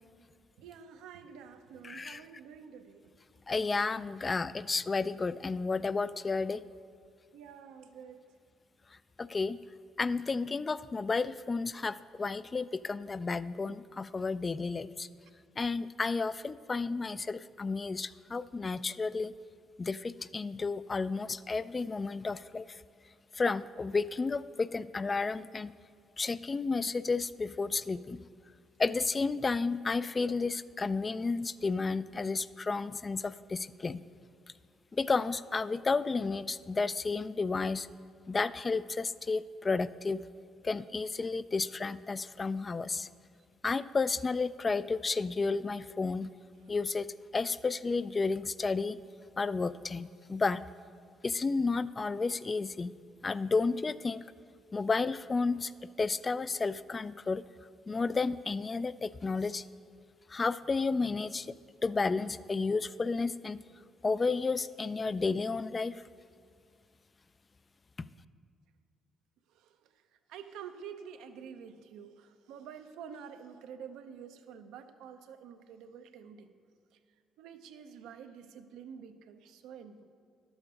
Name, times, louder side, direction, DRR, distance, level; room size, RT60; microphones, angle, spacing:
voice 1, 0.6-3.1 7.3-8.2 69.5-70.0 70.3-76.5 77.4-80.0, right 7 dB, 85° right, 8 dB, 0.6 m, -48 dB
voice 2, 1.8-2.2 3.5-6.6 9.2-9.6 10.0-15.1 15.6-19.3 19.8-22.7 23.3-25.7 26.2-28.2 28.8-34.0 34.9-37.9 38.3-40.2 40.6-43.1 43.6-46.3 46.7-47.1 47.3-49.0 49.4-50.6 51.2-52.9 53.2-54.3 54.7-55.7 56.0-57.4 57.9-59.6 60.3-61.5 61.8-63.6 64.0-65.9, left 4 dB, 35° left, 16 dB, 0.3 m, -32 dB
11.5 x 7.1 x 5.3 m, 2.3 s
supercardioid pair, 70°, 0 cm